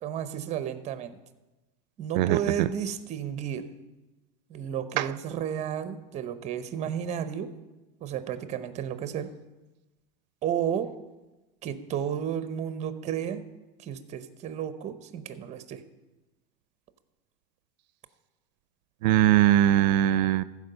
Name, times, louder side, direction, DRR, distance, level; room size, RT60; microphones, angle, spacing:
voice 1, 0.0-1.2 2.0-3.7 4.5-7.5 8.0-9.3 10.4-10.9 11.6-13.4 13.8-15.8, right 9 dB, 30° right, 12 dB, 0.8 m, -32 dB
voice 2, 2.2-2.7 5.0-5.1 19.0-20.4, right 12 dB, 90° right, 15 dB, 0.4 m, -21 dB
14.5 x 4.9 x 6.7 m, 1.1 s
supercardioid pair, 135°, 21 cm